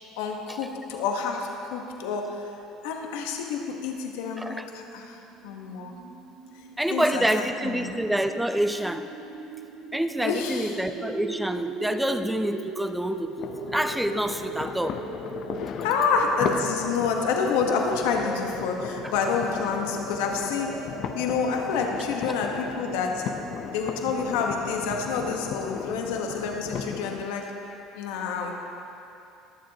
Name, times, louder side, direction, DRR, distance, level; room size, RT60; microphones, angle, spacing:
voice 1, 0.2-5.2 5.4-6.0 6.9-8.0 10.2-10.8 15.8-27.6 27.9-28.5, left 5 dB, 85° left, 2 dB, 1.1 m, -28 dB
sound 1, 4.7-23.6, right 3 dB, 80° right, 1.7 m, -39 dB
voice 2, 6.8-9.1 9.9-15.0 19.0-19.1, right 1 dB, 5° right, 9 dB, 0.6 m, -27 dB
sound 2, 13.4-27.2, left 7 dB, 60° left, 0.6 m, -36 dB
22.0 x 7.5 x 2.8 m, 2.8 s
supercardioid pair, 95°, 0 cm